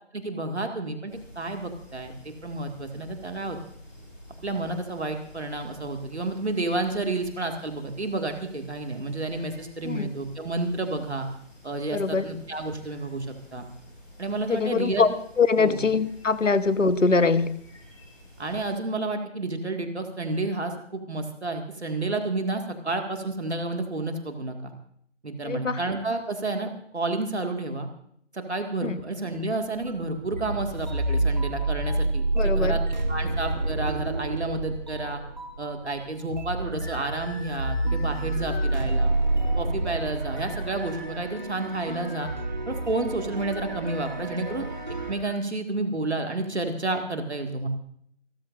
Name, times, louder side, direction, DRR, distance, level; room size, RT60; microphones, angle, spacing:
voice 1, 0.1-3.6 4.4-11.3 11.6-13.3 13.5-13.7 14.2-15.0 15.6-15.8 18.4-24.7 25.2-27.9 28.3-32.8 33.1-35.2 35.6-39.1 39.6-42.3 42.7-44.7 45.1-47.7, right 2 dB, 60° right, 4 dB, 2.1 m, -30 dB
sound 1, 1.1-18.7, equal, 5° left, 4.1 m, -50 dB
voice 2, 11.9-12.3 14.5-15.1 15.4-17.5 25.4-25.8 28.8-29.0 32.3-32.8, left 4 dB, 80° left, 13 dB, 1.3 m, -23 dB
sound 2, 29.7-45.1, right 2 dB, 35° right, 1.4 m, -29 dB
sound 3, 36.6-38.8 40.2-42.4 43.4-45.4, left 2 dB, 55° left, 2.2 m, -45 dB
27.5 x 14.0 x 2.6 m, 0.66 s
figure-of-eight pair, 180°, 37 cm